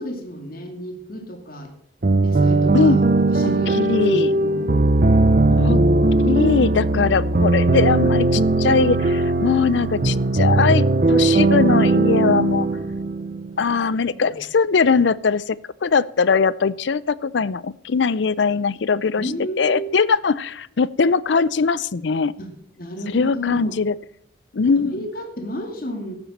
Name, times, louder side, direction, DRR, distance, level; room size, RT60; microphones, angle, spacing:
voice 1, 0.0-1.7 2.2-4.6 14.3-14.4 19.2-19.9 22.4-22.5 22.8-23.8 24.8-26.1, equal, 50° left, 4 dB, 2.3 m, -32 dB
sound 1, 2.0-13.7, right 2 dB, 45° right, 0.6 m, -18 dB
voice 2, 2.7-3.1 3.4-4.3 5.5-5.8 6.2-12.7 13.6-19.3 19.6-22.3 23.1-23.9 24.5-25.1, left 5 dB, 75° left, 20 dB, 0.5 m, -21 dB
12.5 x 9.0 x 7.2 m, 0.67 s
head